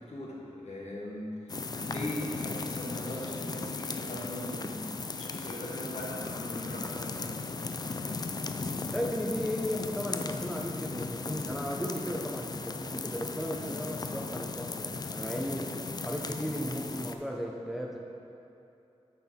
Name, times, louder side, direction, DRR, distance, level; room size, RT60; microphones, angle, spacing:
voice 1, 0.0-7.4, left 1 dB, 70° left, -3 dB, 1.3 m, -40 dB
sound 1, 1.5-17.2, left 4 dB, 35° left, 0.3 m, -37 dB
voice 2, 8.9-15.7 16.0-18.0, equal, ahead, -1 dB, 0.7 m, -35 dB
7.0 x 6.1 x 4.4 m, 2.8 s
wide cardioid pair, 85°, 11 cm